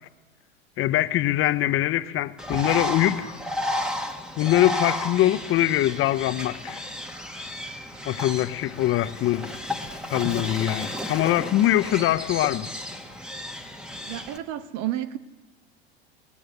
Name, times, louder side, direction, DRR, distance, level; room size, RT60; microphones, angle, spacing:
voice 1, 0.8-3.4 4.4-6.8 8.0-9.5 10.1-12.7, left 14 dB, 40° left, 1.0 m, -23 dB
Bird, 2.4-14.4, left 1 dB, ahead, 1.9 m, -33 dB
voice 2, 14.0-15.2, right 13 dB, 50° right, 1.3 m, -31 dB
22.0 x 18.5 x 6.7 m
hypercardioid pair, 90°, 33 cm